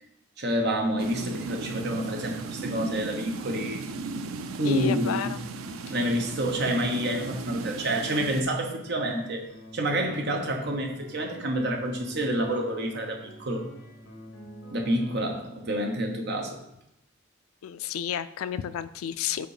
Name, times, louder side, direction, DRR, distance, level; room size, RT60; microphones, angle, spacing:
voice 1, 0.4-3.8 4.6-5.4 5.9-9.5 9.7-13.7 14.7-16.6, right 1 dB, 55° right, 2 dB, 0.9 m, -28 dB
sound 1, 1.0-8.4, right 3 dB, 90° right, 0.5 m, -36 dB
voice 2, 4.6-5.4 5.9-6.0 17.6-19.5, left 9 dB, 90° left, 13 dB, 0.3 m, -31 dB
sound 2, 4.7-15.4, right 1 dB, 70° left, 1.5 m, -47 dB
5.0 x 3.8 x 4.9 m, 0.82 s
head